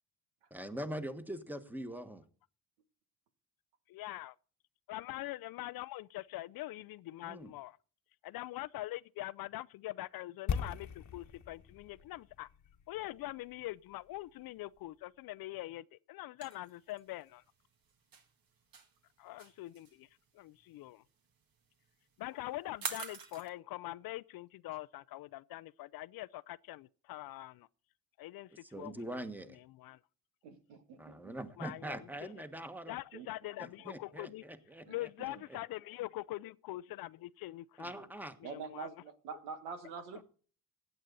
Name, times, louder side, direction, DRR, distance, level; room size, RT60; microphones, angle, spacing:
voice 1, 0.5-2.2 7.2-7.5 28.6-29.6 31.0-33.0 33.6-35.4 37.8-38.4, right 1 dB, 5° right, 1.4 m, -43 dB
voice 2, 3.9-4.3 4.9-7.8 8.2-12.5 12.9-17.4 19.2-20.1 20.3-21.0 22.2-27.7 28.2-28.5 28.7-29.0 29.6-30.0 31.6-32.3 32.9-34.5 34.9-37.9 38.4-38.9, left 17 dB, 55° left, 0.5 m, -43 dB
sound 1, 10.5-14.4 14.7-14.8, left 7 dB, 40° left, 1.2 m, -40 dB
sound 2, 16.4-23.5, right 5 dB, 50° right, 2.0 m, -45 dB
voice 3, 30.4-31.3 33.1-33.3 34.9-35.0 38.4-38.9 39.2-40.2, right 5 dB, 85° right, 1.5 m, -45 dB
16.0 x 9.0 x 4.0 m
hypercardioid pair, 55°, 44 cm